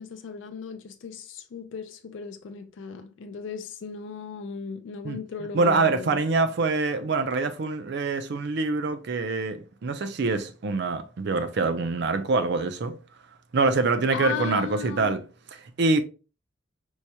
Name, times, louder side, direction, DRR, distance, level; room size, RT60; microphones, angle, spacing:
voice 1, 0.0-6.2 14.1-15.2, left 6 dB, 75° left, 0.4 m, -36 dB
voice 2, 5.5-13.0 13.5-15.2 15.8-16.0, right 3 dB, 60° right, 0.5 m, -25 dB
4.6 x 2.8 x 2.2 m
head